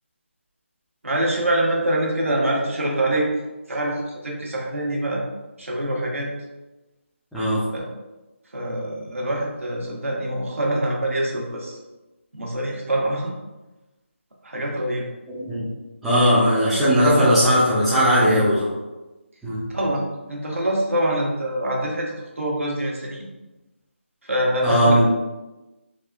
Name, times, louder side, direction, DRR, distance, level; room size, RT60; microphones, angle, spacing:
voice 1, 1.0-3.4 3.7-5.2 5.6-6.3 7.7-7.9 8.5-11.8 12.3-13.3 14.4-15.1 19.7-23.3 24.2-24.9, right 1 dB, 90° right, -2 dB, 0.9 m, -25 dB
voice 2, 7.3-7.6 15.3-15.6 16.0-18.7 19.4-19.6 24.6-25.0, equal, ahead, -14 dB, 0.3 m, -18 dB
3.4 x 2.3 x 2.3 m, 1.1 s
figure-of-eight pair, 165°, 7 cm